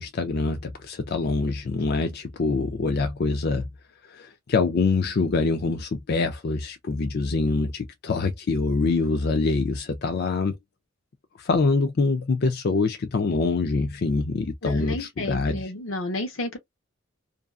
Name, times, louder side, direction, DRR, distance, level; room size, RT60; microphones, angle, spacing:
voice 1, 0.0-3.6 4.1-10.6 11.4-15.6, left 3 dB, 50° left, 0.4 m, -25 dB
voice 2, 14.6-16.6, left 2 dB, 85° left, 1.0 m, -31 dB
2.6 x 2.4 x 2.3 m
head